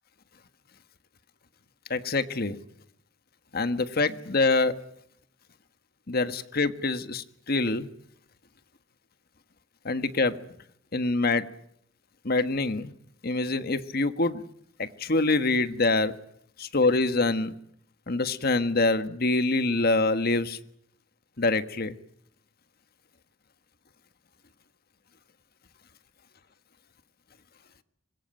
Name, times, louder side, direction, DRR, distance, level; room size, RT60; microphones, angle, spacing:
voice 1, 1.9-2.6 3.5-4.9 6.1-7.9 9.8-10.4 10.9-11.5 12.2-12.9 13.2-14.4 14.8-16.2 16.6-17.5 18.1-20.6 21.4-22.0, left 3 dB, 50° left, 1.5 m, -25 dB
25.5 x 22.0 x 9.1 m
head